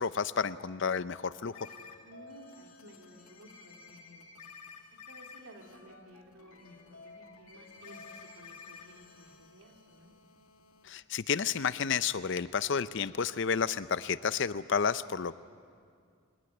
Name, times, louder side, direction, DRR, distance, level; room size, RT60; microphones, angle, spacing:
voice 1, 0.0-1.7 10.8-15.3, left 6 dB, 55° left, 15 dB, 0.5 m, -31 dB
sound 1, 1.5-10.9, left 5 dB, 80° left, 2.0 m, -52 dB
voice 2, 2.0-4.5 5.0-10.1, right 1 dB, 80° right, 2 dB, 2.9 m, -55 dB
22.0 x 18.0 x 9.7 m, 2.2 s
head